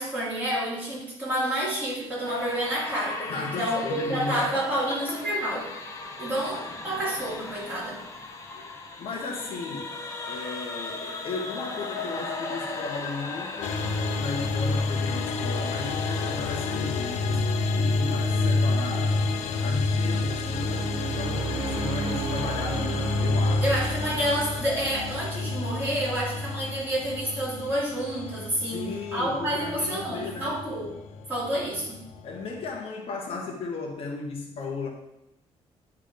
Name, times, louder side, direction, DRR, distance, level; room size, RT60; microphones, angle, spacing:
voice 1, 0.0-5.7 6.2-8.0 23.6-30.9 31.3-32.0, right 1 dB, 15° right, -8 dB, 3.0 m, -29 dB
sound 1, 2.2-19.7, left 3 dB, 25° left, 0.8 m, -38 dB
voice 2, 3.3-5.2 8.5-9.9 10.3-13.8 14.2-17.5 17.8-19.3 19.6-23.7 28.7-30.6 32.2-34.9, left 4 dB, 55° left, 1 dB, 1.1 m, -35 dB
sound 2, 13.6-32.7, left 3 dB, 75° left, 0.6 m, -29 dB
sound 3, 19.9-26.1, right 4 dB, 65° right, 0.9 m, -35 dB
10.0 x 3.6 x 5.1 m, 0.87 s
cardioid pair, 180°, 12 cm